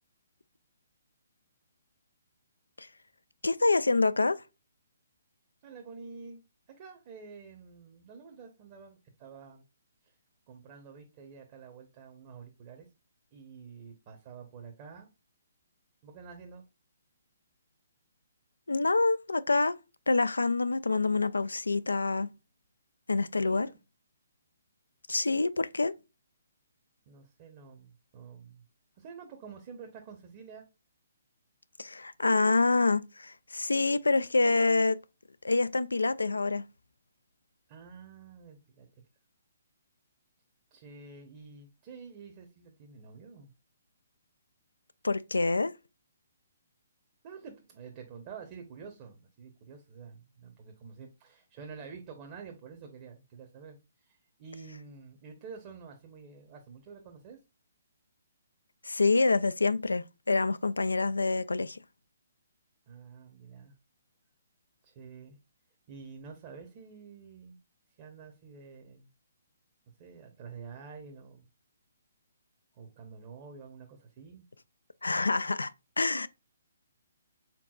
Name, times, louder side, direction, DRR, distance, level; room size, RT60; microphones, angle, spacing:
voice 1, 3.4-4.4 18.7-19.7 20.1-22.3 23.1-23.7 25.1-25.9 31.8-35.0 35.4-36.6 45.0-45.7 58.8-61.8 75.0-75.7 76.0-76.3, left 3 dB, 85° left, 0.3 m, -26 dB
voice 2, 5.6-9.6 10.0-10.1 10.5-12.9 13.3-15.1 16.0-16.6 23.4-23.8 27.1-28.6 29.0-30.6 37.7-38.9 40.7-43.5 47.2-57.4 62.9-63.7 64.8-65.4 65.9-67.6 68.0-69.1 70.0-71.4 72.7-74.4, right 5 dB, 35° right, 0.9 m, -48 dB
4.5 x 3.6 x 2.3 m
figure-of-eight pair, 140°, 0 cm